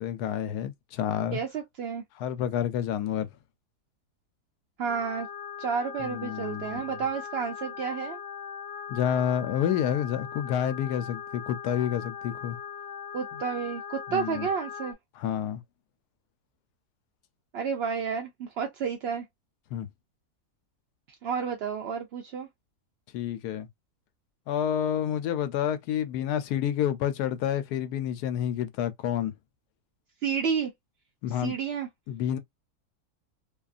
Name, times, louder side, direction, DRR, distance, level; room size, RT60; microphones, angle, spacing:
voice 1, 0.0-1.4 2.2-3.3 6.0-6.8 8.9-12.6 13.3-13.4 14.1-14.5 15.2-15.6 19.7-19.9 23.1-23.7 24.5-29.3 31.2-31.5 32.1-32.4, left 10 dB, 85° left, 1.1 m, -29 dB
voice 2, 1.3-2.0 4.8-5.3 5.6-8.2 13.1-15.0 17.5-19.3 21.2-22.5 30.2-30.7 31.3-31.9, right 6 dB, 70° right, 0.6 m, -31 dB
sound 1, 4.9-14.9, left 7 dB, 65° left, 0.6 m, -40 dB
2.8 x 2.4 x 2.4 m
omnidirectional pair, 1.6 m